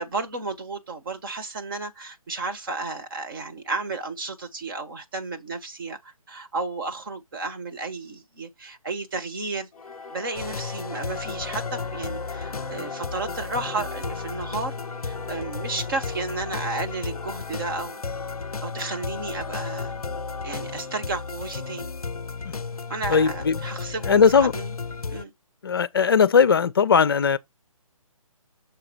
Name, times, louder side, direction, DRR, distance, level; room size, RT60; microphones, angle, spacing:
voice 1, 0.0-9.7 10.1-14.7 15.0-18.0 18.6-19.9 20.4-21.9 22.9-24.3 24.5-24.7 25.1-25.3, right 3 dB, 35° right, 1.4 m, -33 dB
Singing / Musical instrument, 9.7-22.6, left 4 dB, 5° left, 0.7 m, -41 dB
sound 1, 10.4-25.2, left 4 dB, 90° left, 0.4 m, -34 dB
voice 2, 23.1-23.6 24.1-24.5 25.6-27.4, left 6 dB, 40° left, 0.5 m, -19 dB
6.6 x 4.8 x 4.6 m
figure-of-eight pair, 145°, 18 cm